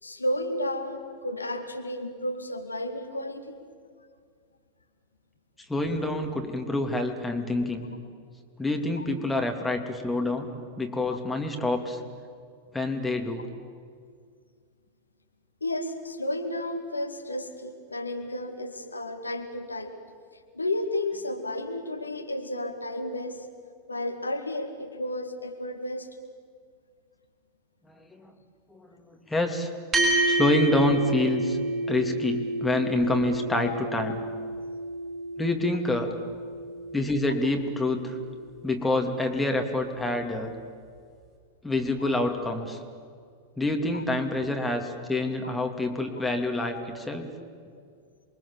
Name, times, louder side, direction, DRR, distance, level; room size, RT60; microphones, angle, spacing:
voice 1, 0.0-3.6 9.0-9.1 15.6-19.9 20.5-23.5 23.9-26.2 42.0-42.1 43.9-44.0 45.4-45.5, left 1 dB, 80° left, 5 dB, 2.1 m, -32 dB
voice 2, 5.7-7.8 8.6-10.5 10.8-12.0 12.7-13.5 28.1-28.3 28.7-29.7 30.3-31.6 31.9-34.2 35.4-36.1 36.9-38.2 38.6-40.5 41.6-42.8 43.6-47.3, left 2 dB, 10° left, 3 dB, 2.8 m, -27 dB
sound 1, 29.9-38.6, right 2 dB, 25° right, 6.3 m, -30 dB
28.0 x 23.5 x 7.3 m, 2.1 s
figure-of-eight pair, 90°, 0 cm